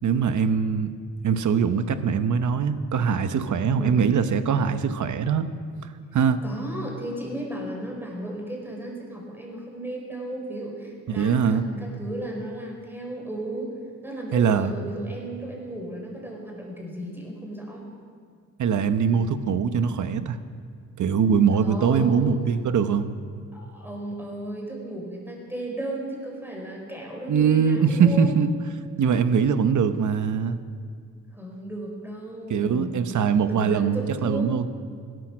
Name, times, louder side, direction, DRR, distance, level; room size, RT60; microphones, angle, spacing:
voice 1, 0.0-0.9 1.2-5.5 6.1-6.4 11.1-11.7 14.3-14.7 18.6-20.4 21.0-23.1 27.3-28.5 29.0-30.6 32.5-34.7, right 6 dB, 65° right, 10 dB, 1.0 m, -22 dB
voice 2, 3.8-4.1 6.4-17.9 21.6-22.4 23.5-28.3 29.0-29.2 31.3-33.1 33.4-34.5, right 1 dB, 5° right, -1 dB, 4.8 m, -34 dB
17.0 x 13.0 x 6.2 m, 2.2 s
cardioid pair, 90°, 32 cm